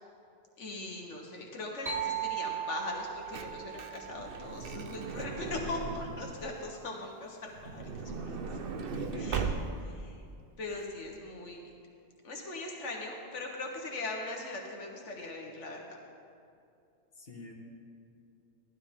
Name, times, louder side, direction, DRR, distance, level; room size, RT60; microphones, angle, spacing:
voice 1, 0.6-8.6 9.2-9.5 9.8-10.1 10.6-11.6 12.2-16.0 17.5-17.6, left 2 dB, 90° left, 0 dB, 1.6 m, -40 dB
sound 1, 1.9-5.5, right 9 dB, 35° right, 1.2 m, -38 dB
Truck / Door, 2.9-6.4 7.5-10.0 10.7-10.8 11.0-11.1, right 4 dB, 55° right, 0.9 m, -38 dB
voice 2, 8.9-9.5 17.2-17.5, left 2 dB, 55° left, -2 dB, 1.9 m, -44 dB
17.0 x 12.5 x 3.6 m, 2.5 s
omnidirectional pair, 1.2 m